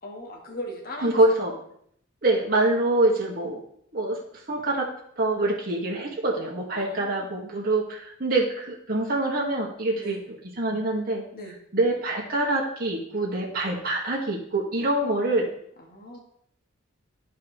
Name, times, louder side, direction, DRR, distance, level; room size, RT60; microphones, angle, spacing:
voice 1, 0.0-1.4 6.7-7.3 10.0-10.3 11.3-11.6 15.9-16.2, equal, 45° left, 0 dB, 1.8 m, -39 dB
voice 2, 1.0-1.5 2.2-3.6 3.9-4.2 4.5-4.9 5.2-10.2 10.6-11.3 11.7-15.5, right 2 dB, 45° right, -3 dB, 2.1 m, -25 dB
14.0 x 4.9 x 3.3 m, 0.68 s
head